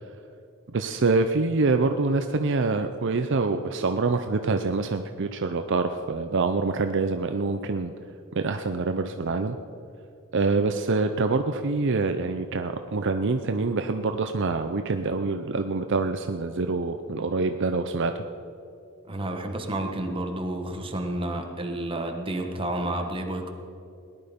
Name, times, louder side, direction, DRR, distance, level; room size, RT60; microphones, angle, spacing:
voice 1, 0.7-7.9 8.3-9.6 10.3-18.2, right 3 dB, 55° right, 7 dB, 0.6 m, -25 dB
voice 2, 19.1-23.5, right 1 dB, 25° right, 3 dB, 1.5 m, -30 dB
18.5 x 11.0 x 5.2 m, 2.6 s
head